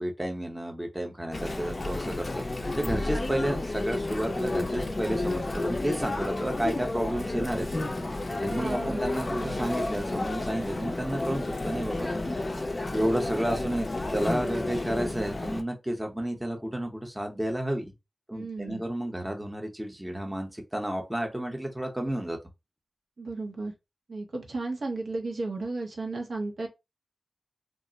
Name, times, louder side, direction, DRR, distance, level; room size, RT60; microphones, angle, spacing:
voice 1, 0.0-2.3 2.7-7.7 8.4-12.5 12.9-17.9 18.3-22.4, right 1 dB, 10° right, 0.7 m, -31 dB
Chatter, 1.3-15.6, left 2 dB, 35° left, 0.4 m, -31 dB
voice 2, 8.5-9.0 13.0-13.1 18.3-18.8 23.2-23.7 24.1-26.7, right 3 dB, 75° right, 0.8 m, -34 dB
2.4 x 2.1 x 3.8 m
wide cardioid pair, 115°, 0 cm